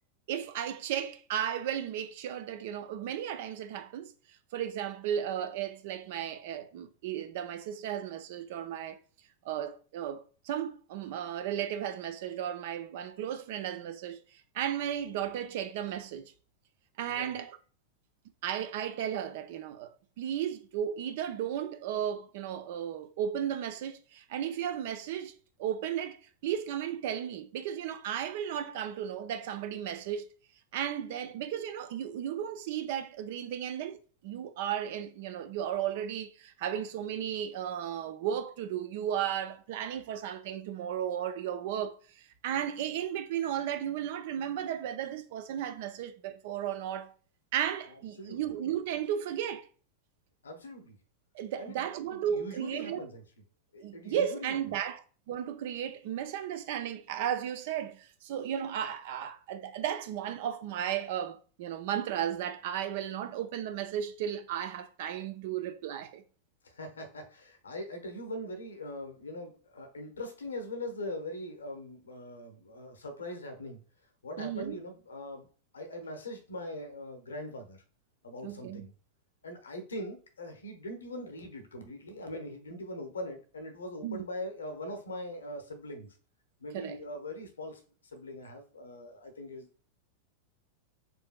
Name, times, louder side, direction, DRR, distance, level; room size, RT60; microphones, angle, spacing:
voice 1, 0.3-4.1 4.5-9.0 9.4-16.3 17.0-17.6 18.4-25.3 25.6-26.2 26.4-30.3 30.7-34.0 34.2-47.1 47.5-49.7 51.3-53.0 53.8-66.2 74.4-74.8 78.4-78.8 84.0-84.2 86.7-87.0, right 9 dB, 50° right, 0.4 m, -34 dB
voice 2, 47.9-48.4 50.4-51.0 51.6-53.2 53.7-54.6 66.6-73.8 74.2-75.5 75.7-77.8 78.2-78.9 79.4-86.2 86.6-89.9, left 1 dB, 70° left, 0.8 m, -41 dB
4.3 x 2.6 x 2.2 m
figure-of-eight pair, 90°, 0 cm